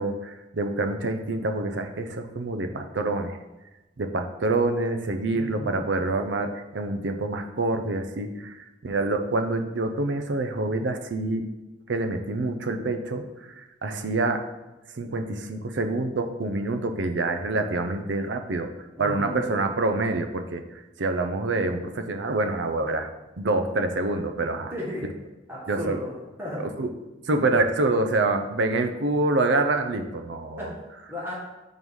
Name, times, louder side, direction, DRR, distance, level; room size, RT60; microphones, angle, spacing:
voice 1, 0.0-3.4 4.0-11.5 11.9-14.4 14.9-18.7 19.0-23.1 23.4-24.7 25.7-26.0 26.8-26.9 27.3-30.7, right 2 dB, 75° right, 7 dB, 0.6 m, -26 dB
voice 2, 5.3-5.8 19.0-19.4 24.7-25.0 25.5-26.1 26.4-26.6 30.6-31.4, left 1 dB, 10° right, -6 dB, 1.5 m, -34 dB
4.7 x 3.9 x 5.3 m, 1.0 s
head